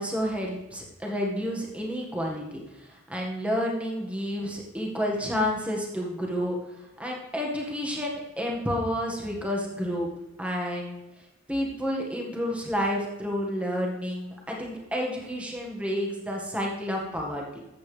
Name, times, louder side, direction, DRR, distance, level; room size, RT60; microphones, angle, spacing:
voice 1, 0.0-6.6 7.0-10.1 10.4-11.0 11.5-17.6, equal, 5° right, -2 dB, 1.8 m, -30 dB
13.5 x 8.3 x 3.4 m, 0.98 s
head